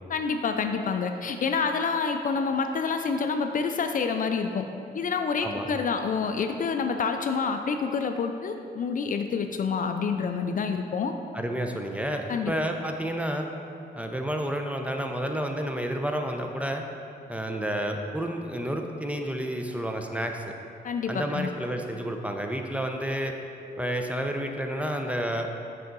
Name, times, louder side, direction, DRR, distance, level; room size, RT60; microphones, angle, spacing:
voice 1, 0.1-4.7 4.9-11.1 12.3-12.5 20.8-21.5, left 5 dB, 50° left, 6 dB, 0.4 m, -28 dB
voice 2, 11.3-13.5 13.9-16.8 17.3-20.5 21.1-23.3 23.8-25.5, equal, 5° right, 3 dB, 0.5 m, -30 dB
5.6 x 5.2 x 3.9 m, 2.6 s
cardioid pair, 75°, 18 cm